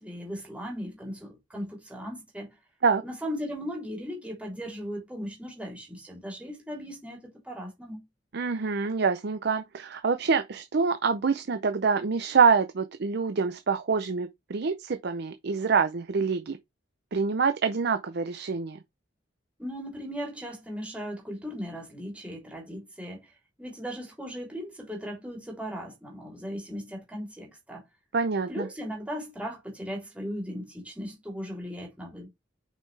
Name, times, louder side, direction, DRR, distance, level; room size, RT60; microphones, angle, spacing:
voice 1, 0.0-2.5 3.0-8.0 19.6-23.3 23.6-27.8 28.5-32.3, equal, 5° right, 3.3 m, -37 dB
voice 2, 8.3-16.6 17.1-18.8 28.1-28.7, right 5 dB, 60° right, 0.6 m, -26 dB
6.5 x 5.3 x 3.3 m
head